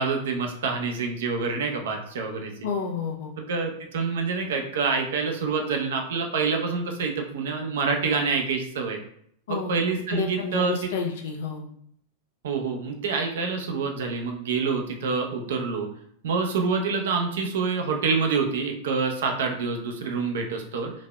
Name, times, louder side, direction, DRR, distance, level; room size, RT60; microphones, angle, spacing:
voice 1, 0.0-2.5 3.4-9.0 9.5-10.7 12.4-15.9 16.2-20.9, right 4 dB, 65° right, 3 dB, 0.6 m, -27 dB
voice 2, 2.6-3.4 9.5-9.7 10.1-11.7, left 5 dB, 65° left, 2 dB, 0.7 m, -30 dB
4.0 x 2.7 x 2.2 m, 0.66 s
figure-of-eight pair, 95°, 0 cm